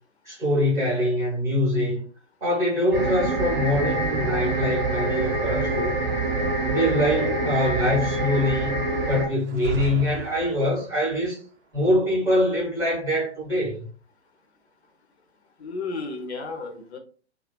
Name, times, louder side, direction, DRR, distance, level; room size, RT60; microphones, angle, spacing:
voice 1, 0.2-2.0 2.4-6.0 6.7-11.4 11.7-13.9, left 1 dB, 10° right, 0.6 m, -24 dB
sound 1, 2.9-9.3, right 2 dB, 45° right, 0.7 m, -25 dB
sound 2, 9.4-11.1, right 5 dB, 80° right, 0.5 m, -32 dB
voice 2, 15.6-17.0, left 3 dB, 65° left, 0.7 m, -33 dB
2.4 x 2.3 x 2.2 m
figure-of-eight pair, 125°, 35 cm